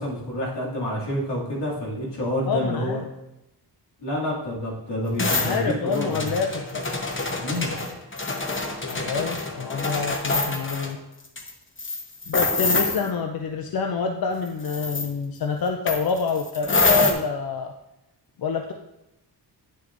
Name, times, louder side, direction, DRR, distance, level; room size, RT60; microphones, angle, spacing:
voice 1, 0.0-3.0 4.0-6.3 7.4-7.8, left 1 dB, 75° left, -5 dB, 2.4 m, -28 dB
voice 2, 2.5-3.1 5.4-7.0 8.9-11.0 12.3-17.7 18.4-18.7, left 5 dB, 60° left, 5 dB, 0.6 m, -27 dB
sound 1, 5.2-10.9 11.4-11.5 11.8-13.1 14.6-15.1 15.9-17.1, left 3 dB, 30° left, 0.9 m, -26 dB
9.6 x 6.6 x 2.5 m, 0.91 s
wide cardioid pair, 95°, 42 cm